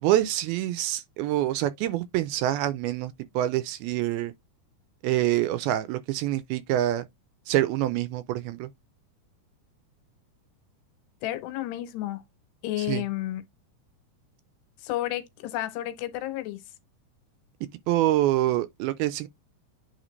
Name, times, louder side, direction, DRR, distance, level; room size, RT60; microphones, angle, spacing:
voice 1, 0.0-4.3 5.0-7.1 7.5-8.7 12.9-13.0 17.9-19.3, right 13 dB, 80° right, 2.3 m, -26 dB
voice 2, 11.2-12.2 12.6-13.4 14.8-16.6, left 14 dB, 85° left, 3.1 m, -31 dB
9.0 x 3.6 x 3.2 m
omnidirectional pair, 4.7 m